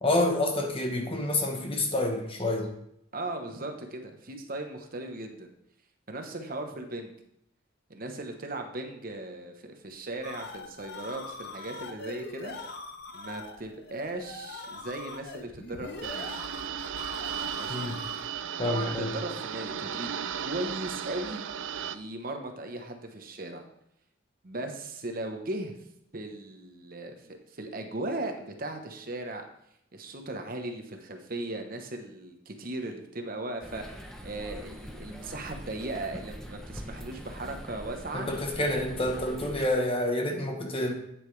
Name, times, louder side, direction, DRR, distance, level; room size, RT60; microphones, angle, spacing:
voice 1, 0.0-2.7 17.7-18.0 18.6-19.1 38.1-40.9, left 1 dB, 30° left, 3 dB, 1.1 m, -28 dB
voice 2, 3.1-5.5 6.1-7.1 7.9-12.5 13.1-16.4 17.6-17.9 18.6-20.1 20.4-21.4 21.9-23.6 24.4-25.8 26.1-29.4 29.9-33.8 34.2-38.3, right 2 dB, 45° right, 5 dB, 1.0 m, -37 dB
sound 1, 9.9-18.4, left 3 dB, 55° left, 0.8 m, -42 dB
sound 2, 16.0-22.0, right 8 dB, 75° right, 0.5 m, -35 dB
sound 3, 33.6-39.7, equal, 5° left, 0.8 m, -43 dB
8.9 x 8.1 x 3.3 m, 0.76 s
head